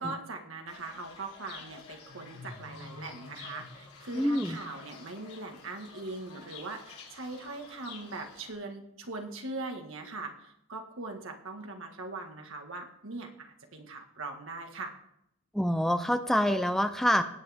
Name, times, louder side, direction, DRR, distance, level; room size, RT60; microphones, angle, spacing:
voice 1, 0.0-15.0, right 3 dB, 65° right, 3 dB, 1.8 m, -41 dB
Fowl / Bird, 0.7-8.5, left 4 dB, 90° left, 3.7 m, -49 dB
voice 2, 4.1-4.6 15.6-17.2, equal, ahead, 8 dB, 0.5 m, -26 dB
18.5 x 8.5 x 3.6 m, 0.76 s
head